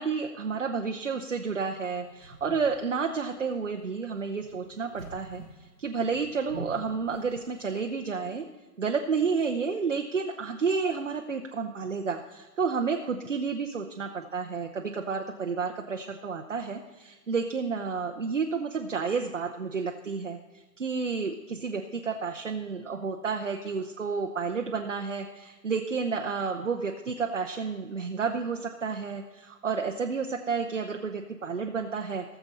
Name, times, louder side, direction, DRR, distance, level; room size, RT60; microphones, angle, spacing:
voice 1, 0.0-5.4 5.8-8.4 8.8-20.4 20.8-32.2, right 5 dB, 50° right, 3 dB, 0.8 m, -31 dB
sound 1, 1.5-7.8, right 2 dB, 15° left, 1.5 m, -47 dB
18.5 x 6.9 x 4.2 m, 1.2 s
hypercardioid pair, 170°, 48 cm